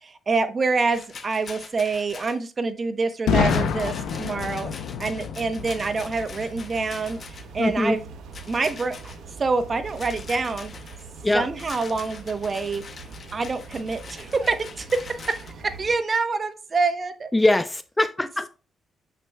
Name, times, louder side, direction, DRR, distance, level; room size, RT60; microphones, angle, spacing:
voice 1, 0.0-4.7 5.0-7.2 7.5-8.0 8.5-9.1 9.4-10.7 11.3-12.8 13.3-17.3, right 4 dB, 40° right, 9 dB, 0.9 m, -26 dB
Rattle, 0.9-2.4 3.4-7.6 8.3-9.2 9.9-11.1 11.6-15.5, left 5 dB, 50° left, 0.8 m, -43 dB
Boom, 3.3-7.1, left 6 dB, 90° left, 0.6 m, -27 dB
sound 1, 5.6-15.9, right 4 dB, 90° right, 1.0 m, -43 dB
voice 2, 7.6-8.0 11.2-11.4 17.3-18.5, left 2 dB, 15° left, 12 dB, 0.5 m, -21 dB
6.8 x 6.0 x 2.3 m, 0.33 s
cardioid pair, 80°, 0 cm